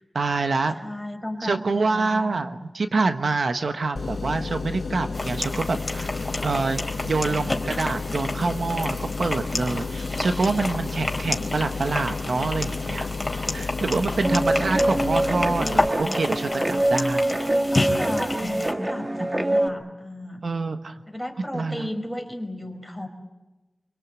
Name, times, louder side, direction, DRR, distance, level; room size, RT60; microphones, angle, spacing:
voice 1, 0.0-0.7 1.4-6.1 6.4-13.1 13.5-17.2 20.4-20.9 21.5-21.9, right 3 dB, 75° right, 8 dB, 1.2 m, -26 dB
voice 2, 0.7-2.4 7.3-8.0 17.1-20.4 21.1-23.1, left 1 dB, ahead, 4 dB, 4.8 m, -34 dB
sound 1, 4.0-15.9, left 4 dB, 70° left, 1.1 m, -32 dB
sound 2, 5.1-18.7, left 2 dB, 25° left, 3.8 m, -31 dB
Guitar, 14.2-19.7, right 1 dB, 30° right, 2.1 m, -25 dB
25.5 x 24.0 x 8.3 m, 1.1 s
wide cardioid pair, 85°, 0 cm